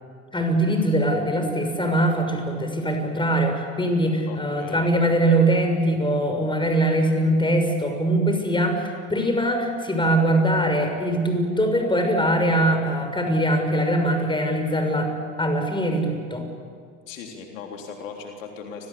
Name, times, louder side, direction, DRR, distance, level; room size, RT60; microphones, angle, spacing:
voice 1, 0.3-15.1 15.4-16.4, right 1 dB, 10° left, 5 dB, 6.5 m, -22 dB
voice 2, 4.3-4.9 17.1-18.9, left 6 dB, 75° left, 2 dB, 3.6 m, -38 dB
29.5 x 23.0 x 8.5 m, 2.1 s
hypercardioid pair, 70°, 39 cm